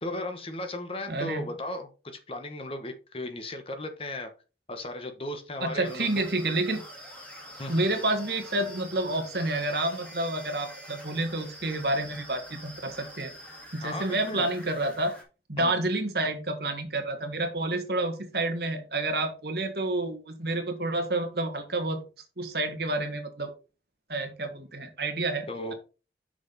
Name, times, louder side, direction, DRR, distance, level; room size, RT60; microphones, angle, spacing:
voice 1, 0.0-4.3 4.7-6.1 7.6-7.9 13.8-14.5 15.6-15.7 25.5-25.7, left 1 dB, 30° left, 7 dB, 1.1 m, -36 dB
voice 2, 1.1-1.4 5.6-6.8 7.7-13.3 13.7-15.1 15.5-22.0 22.4-23.5 24.1-25.7, right 2 dB, 65° right, 5 dB, 1.7 m, -29 dB
sound 1, 5.8-15.2, equal, 5° left, 1.8 m, -46 dB
6.3 x 5.9 x 4.0 m, 0.33 s
head